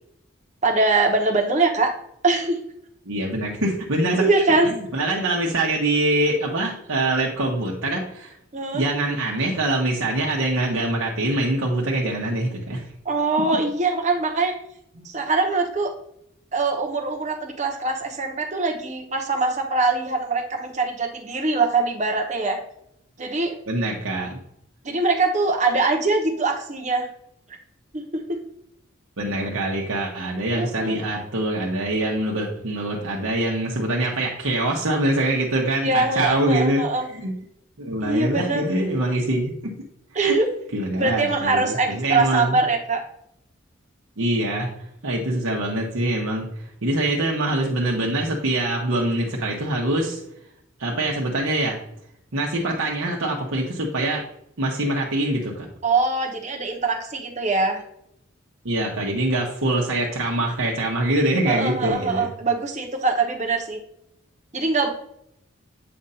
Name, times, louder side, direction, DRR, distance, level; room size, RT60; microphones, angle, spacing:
voice 1, 0.6-1.9 2.2-2.6 4.2-4.7 8.5-8.8 13.0-14.5 15.0-15.9 16.5-22.6 23.2-23.6 24.8-27.1 27.9-28.4 30.5-31.0 35.8-37.1 38.0-38.7 40.1-40.5 40.9-43.0 55.8-57.8 61.4-63.8 64.5-64.9, right 3 dB, 35° right, 2 dB, 1.0 m, -23 dB
voice 2, 3.1-4.3 4.6-8.3 8.7-12.9 15.0-15.1 23.7-24.4 29.2-37.3 37.8-39.7 40.1-40.4 40.7-42.6 44.2-46.5 46.8-50.2 50.8-51.8 52.3-54.2 54.6-55.7 58.6-62.3, right 1 dB, 80° right, -2 dB, 1.0 m, -24 dB
7.7 x 2.6 x 5.4 m, 0.76 s
head